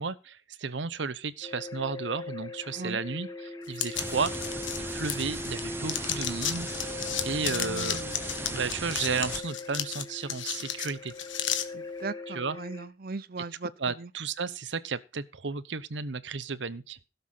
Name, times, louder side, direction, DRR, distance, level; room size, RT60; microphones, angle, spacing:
voice 1, 0.0-4.3 4.9-6.7 7.2-8.0 8.5-11.1 12.3-12.6 13.8-17.0, right 5 dB, 75° right, 0.9 m, -33 dB
sound 1, 1.4-12.9, left 3 dB, 20° left, 1.7 m, -40 dB
sound 2, 3.7-5.6 5.9-11.6, left 10 dB, 85° left, 1.5 m, -33 dB
sound 3, 3.9-9.4, right 2 dB, 10° right, 1.1 m, -37 dB
voice 2, 7.4-8.1 11.7-13.7 14.0-14.1, right 3 dB, 50° right, 0.7 m, -38 dB
16.5 x 7.0 x 5.7 m
head